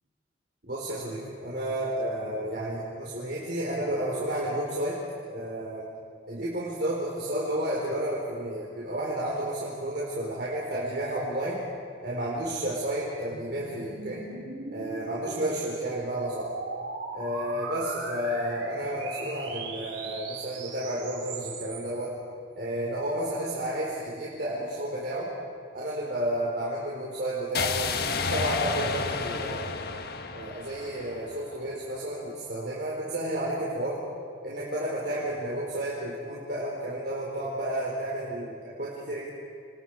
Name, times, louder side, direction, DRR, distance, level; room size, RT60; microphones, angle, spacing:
voice 1, 0.6-5.0 5.3-5.8 6.3-11.6 12.0-14.2 14.7-16.5 17.1-22.1 22.6-25.3 25.7-29.7 30.3-34.0 34.4-39.3, right 1 dB, 55° right, -6 dB, 4.3 m, -31 dB
sound 1, 12.5-22.1, right 3 dB, 80° right, 3.6 m, -39 dB
sound 2, 27.5-31.6, left 4 dB, 50° left, 1.4 m, -31 dB
28.5 x 28.0 x 4.9 m, 2.3 s
head